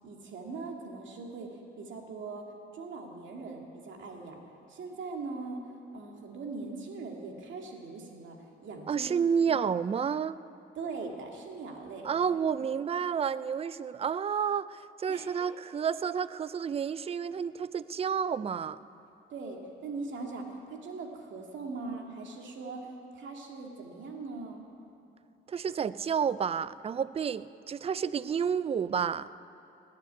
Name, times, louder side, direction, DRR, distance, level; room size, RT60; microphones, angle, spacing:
voice 1, 0.0-4.4 4.7-5.6 5.9-8.4 8.6-9.1 9.5-9.6 10.8-12.1 15.1-15.5 19.3-24.6, right 3 dB, 70° right, 1 dB, 2.2 m, -41 dB
voice 2, 8.9-10.3 12.0-18.8 25.5-29.3, right 7 dB, 30° right, 16 dB, 0.4 m, -30 dB
19.0 x 6.7 x 9.5 m, 2.9 s
cardioid pair, 90°, 20 cm